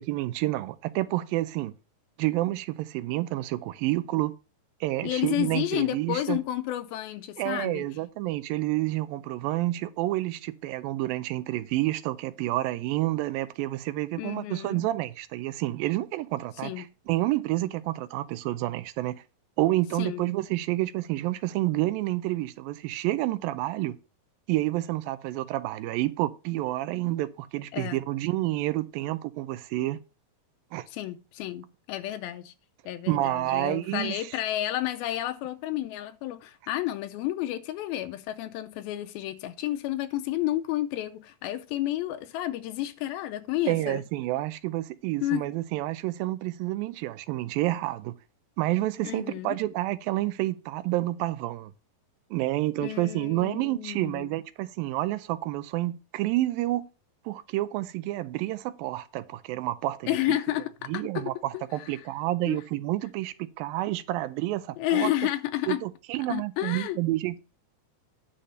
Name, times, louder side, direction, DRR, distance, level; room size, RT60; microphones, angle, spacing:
voice 1, 0.0-1.7 2.2-4.3 4.8-6.4 7.4-19.2 19.6-24.0 24.5-30.0 30.7-30.9 33.1-34.3 43.7-48.1 48.6-51.7 52.3-56.8 57.3-60.4 60.9-65.1 65.7-67.4, right 16 dB, 80° right, 2.3 m, -29 dB
voice 2, 5.0-7.9 14.2-14.8 16.6-16.9 20.0-20.2 27.7-28.0 30.9-32.5 32.9-44.0 45.2-45.5 49.0-49.6 52.8-54.3 60.1-61.9 62.5-62.6 64.8-65.8 66.3-67.0, left 14 dB, 85° left, 2.4 m, -31 dB
10.0 x 4.1 x 6.4 m
omnidirectional pair, 4.2 m